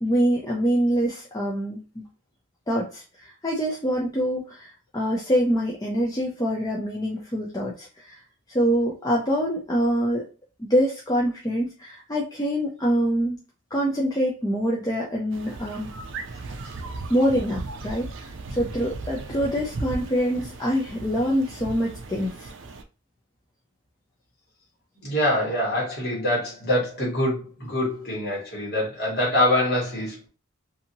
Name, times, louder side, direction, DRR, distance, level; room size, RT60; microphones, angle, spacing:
voice 1, 0.0-2.0 2.7-8.2 8.5-10.3 10.6-13.4 13.7-15.9 17.1-18.1 18.5-22.5, equal, 15° left, -3 dB, 0.4 m, -25 dB
sound 1, 15.3-22.8, right 3 dB, 55° right, 0.4 m, -36 dB
voice 2, 25.0-30.3, left 1 dB, 50° left, -3 dB, 1.4 m, -24 dB
2.8 x 2.6 x 2.6 m, 0.34 s
head